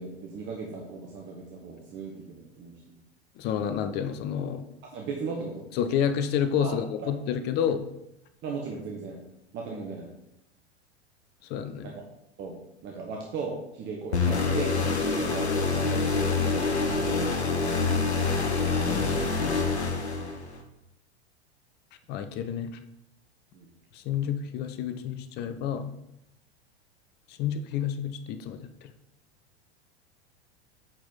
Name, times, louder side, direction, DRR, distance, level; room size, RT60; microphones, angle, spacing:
voice 1, 0.0-2.7 4.8-5.6 6.6-7.1 8.4-9.2 9.5-10.1 11.8-12.0 12.4-12.5 12.8-18.2 23.5-23.7, right 4 dB, 35° right, 0 dB, 1.3 m, -37 dB
voice 2, 3.4-4.7 5.8-7.9 11.4-11.9 18.9-19.6 22.1-22.7 23.9-25.9 27.3-28.7, left 8 dB, 30° left, 9 dB, 0.6 m, -29 dB
sound 1, 14.1-20.6, left 4 dB, 75° left, 1.3 m, -26 dB
9.0 x 4.9 x 3.9 m, 0.83 s
figure-of-eight pair, 90°, 33 cm